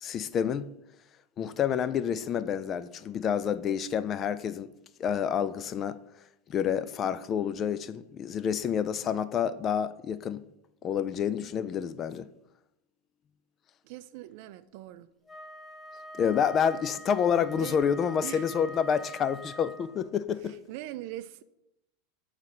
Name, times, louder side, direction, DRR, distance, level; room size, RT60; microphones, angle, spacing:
voice 1, 0.0-0.7 1.4-4.7 5.0-6.0 6.5-10.4 10.8-12.3 16.2-20.6, left 8 dB, 35° left, 0.3 m, -28 dB
voice 2, 13.8-15.1 17.5-17.8 18.2-18.6 20.4-21.4, right 15 dB, 60° right, 0.4 m, -41 dB
Wind instrument woodwind instrument, 15.3-20.1, equal, 5° left, 0.9 m, -45 dB
7.3 x 3.2 x 5.1 m
supercardioid pair, 115°, 0 cm